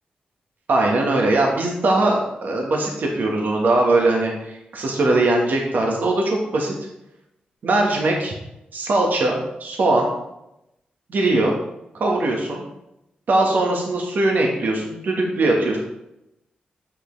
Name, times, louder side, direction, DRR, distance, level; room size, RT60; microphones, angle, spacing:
voice 1, 0.7-6.7 7.6-8.3 8.7-10.1 11.1-11.6 11.9-12.6 13.3-15.8, right 2 dB, 70° right, 0 dB, 1.4 m, -20 dB
6.4 x 6.4 x 3.3 m, 0.86 s
cardioid pair, 80°, 3 cm